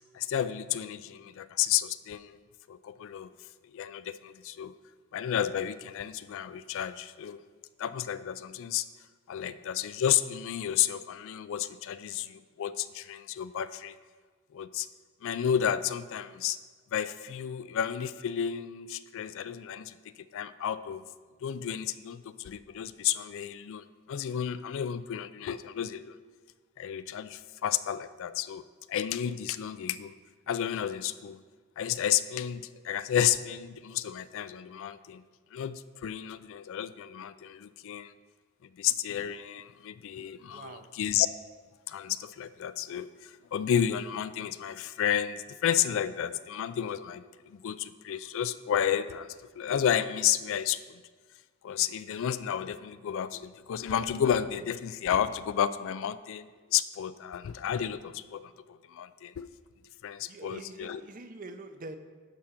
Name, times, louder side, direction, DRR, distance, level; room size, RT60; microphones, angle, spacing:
voice 1, 0.1-2.4 2.7-3.3 3.7-4.7 5.1-7.4 7.8-8.9 9.3-14.0 14.5-14.9 15.2-16.6 16.9-19.9 20.3-21.0 21.4-26.2 26.8-30.1 30.5-31.4 31.8-35.2 35.5-38.1 38.8-41.3 41.9-49.3 49.5-51.0 51.6-59.5 60.0-61.0, left 9 dB, 60° left, 14 dB, 0.3 m, -31 dB
voice 2, 40.5-40.9 60.3-62.0, right 2 dB, 35° right, 8 dB, 0.5 m, -44 dB
10.5 x 3.7 x 5.7 m, 1.5 s
head